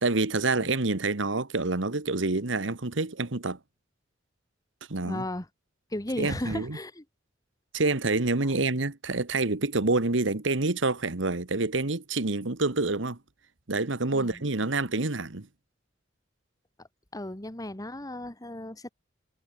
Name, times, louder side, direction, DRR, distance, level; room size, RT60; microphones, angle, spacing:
voice 1, 0.0-3.6 4.9-5.2 6.2-6.8 7.7-13.2 13.7-15.5, right 3 dB, 75° right, 1.5 m, -27 dB
voice 2, 5.0-5.5 5.9-7.0 14.1-14.4 17.1-18.9, left 1 dB, 20° left, 1.8 m, -35 dB
head